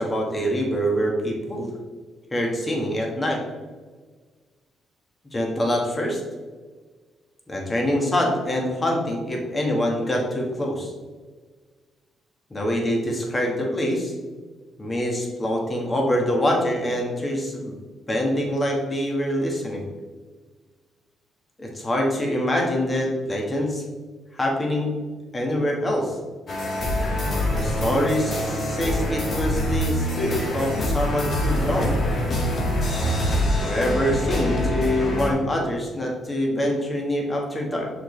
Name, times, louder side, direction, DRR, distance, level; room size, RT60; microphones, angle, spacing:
voice 1, 0.0-1.7 2.3-3.4 5.3-6.2 7.5-10.9 12.5-14.1 14.8-17.7 18.1-19.9 21.6-23.8 24.3-24.9 25.3-26.2 27.5-32.0 33.6-37.9, equal, 25° left, 0 dB, 1.6 m, -25 dB
sound 1, 26.5-35.3, left 1 dB, 55° left, 1.5 m, -25 dB
6.3 x 4.9 x 3.2 m, 1.4 s
cardioid pair, 90°, 0 cm